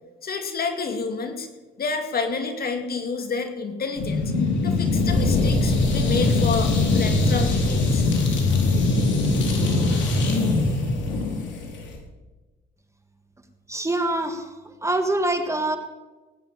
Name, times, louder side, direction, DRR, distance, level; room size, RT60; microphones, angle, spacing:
voice 1, 0.2-1.5 1.8-4.3 4.6-8.0, left 4 dB, 50° left, 5 dB, 2.2 m, -29 dB
sound 1, 4.0-12.0, left 3 dB, 65° left, 3.9 m, -21 dB
voice 2, 13.7-14.5 14.8-15.8, right 2 dB, 15° right, 7 dB, 1.5 m, -24 dB
18.5 x 9.4 x 5.6 m, 1.2 s
cardioid pair, 90°, 20 cm